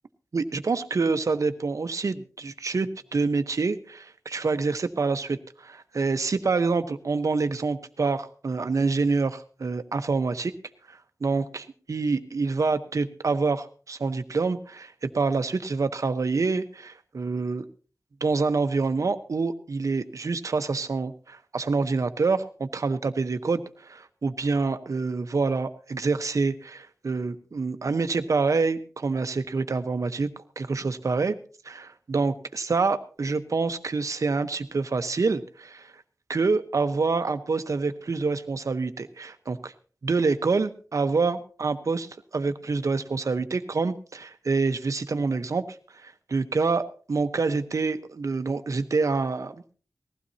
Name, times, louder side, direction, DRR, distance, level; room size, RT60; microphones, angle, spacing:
voice 1, 0.3-10.5 10.9-17.6 18.2-30.3 30.6-31.4 31.6-35.9 36.3-39.7 40.0-45.6 46.0-49.5, right 4 dB, 75° right, 9 dB, 1.1 m, -27 dB
20.0 x 15.5 x 2.9 m, 0.39 s
wide cardioid pair, 85°, 6 cm